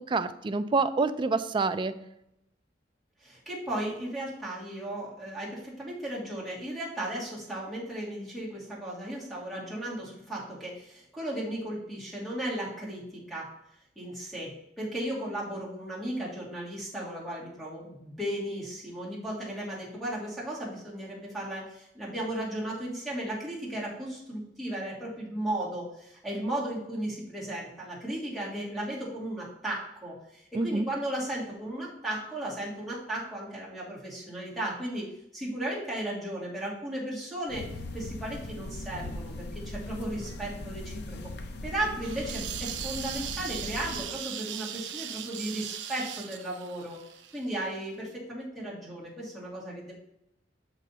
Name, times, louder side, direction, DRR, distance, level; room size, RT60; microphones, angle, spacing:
voice 1, 0.0-1.9 30.5-30.9, right 3 dB, 25° right, 11 dB, 0.4 m, -27 dB
voice 2, 3.2-13.5 14.0-35.1 35.3-37.6 37.9-41.2 41.6-47.0 47.3-49.9, right 1 dB, ahead, -5 dB, 2.2 m, -35 dB
sound 1, 37.5-44.2, left 2 dB, 65° left, 0.6 m, -39 dB
sound 2, 42.0-47.8, right 10 dB, 85° right, 0.6 m, -39 dB
6.3 x 4.1 x 5.5 m, 0.81 s
head